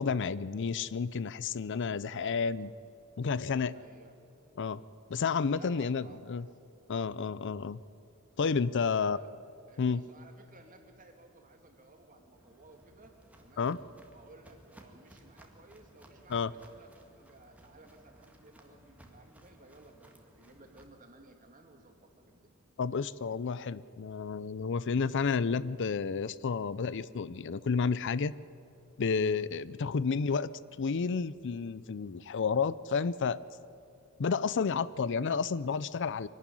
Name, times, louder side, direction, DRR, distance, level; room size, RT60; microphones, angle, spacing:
voice 1, 0.0-2.7 3.2-3.7 4.6-4.8 5.1-6.4 6.9-7.8 8.4-9.2 9.8-10.0 13.6-13.8 16.3-16.5 22.8-28.3 29.0-30.5 30.8-33.4 34.2-36.3, left 5 dB, 55° left, 18 dB, 0.5 m, -31 dB
voice 2, 1.7-2.4 3.7-4.1 5.5-6.6 8.9-9.3 9.7-13.7 14.1-22.5, right 2 dB, 40° right, 4 dB, 2.5 m, -57 dB
Walk footsteps, 12.4-20.8, right 1 dB, 5° right, 1.9 m, -59 dB
24.0 x 12.0 x 9.9 m, 2.7 s
head